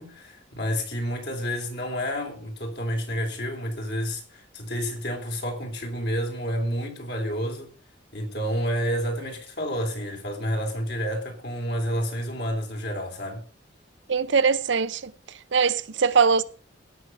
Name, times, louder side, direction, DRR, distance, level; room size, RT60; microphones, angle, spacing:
voice 1, 0.0-7.7 8.1-13.4, equal, 60° left, 3.6 m, -29 dB
voice 2, 14.1-15.1 15.5-16.4, right 5 dB, 75° right, 0.7 m, -21 dB
17.5 x 6.3 x 5.5 m
head